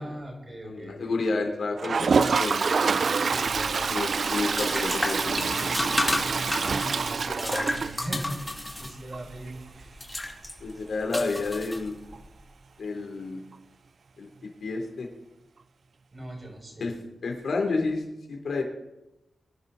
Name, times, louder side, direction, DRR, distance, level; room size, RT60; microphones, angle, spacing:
voice 1, 0.0-1.2 3.2-3.9 6.6-10.0 16.1-17.0, right 1 dB, 35° right, 0 dB, 5.7 m, -39 dB
voice 2, 0.6-2.7 3.9-6.0 10.6-11.9 12.8-13.4 14.2-15.1 16.8-17.0 17.2-18.6, left 3 dB, 80° left, 3 dB, 3.1 m, -30 dB
Toilet flush, 1.8-8.5 8.8-8.9 9.1-9.2 9.5-9.6 12.1-12.2 13.5-13.6, right 5 dB, 60° right, 0.5 m, -26 dB
sound 1, 3.4-12.3, left 1 dB, 10° left, 2.5 m, -33 dB
Thunder, 5.3-7.8, right 3 dB, 85° right, 2.5 m, -43 dB
23.5 x 11.0 x 4.1 m, 0.95 s
wide cardioid pair, 90°, 0 cm